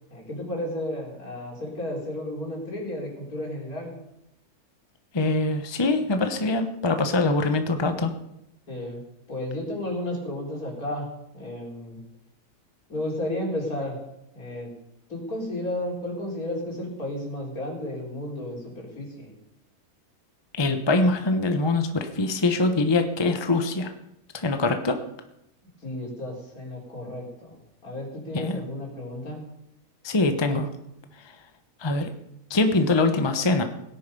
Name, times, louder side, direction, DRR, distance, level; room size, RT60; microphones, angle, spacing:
voice 1, 0.1-4.0 8.7-9.0 9.3-12.0 12.9-14.0 14.3-14.7 15.1-19.3 25.8-29.4, left 1 dB, 70° left, -2 dB, 4.5 m, -33 dB
voice 2, 5.1-8.1 20.6-23.9 24.3-25.0 28.4-28.6 30.0-30.7 31.8-32.1 32.5-33.6, left 2 dB, 20° left, 7 dB, 0.9 m, -23 dB
17.5 x 10.5 x 5.4 m, 0.84 s
omnidirectional pair, 1.6 m